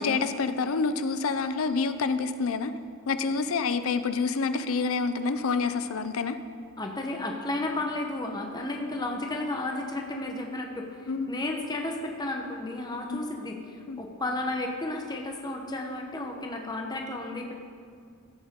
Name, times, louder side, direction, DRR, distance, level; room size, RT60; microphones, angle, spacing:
voice 1, 0.0-2.7 3.1-6.4 11.1-11.3 13.1-13.2 13.9-14.0, left 4 dB, 70° left, 11 dB, 0.5 m, -27 dB
voice 2, 6.8-17.5, left 2 dB, 20° left, 1 dB, 0.9 m, -33 dB
15.0 x 7.9 x 3.7 m, 2.1 s
head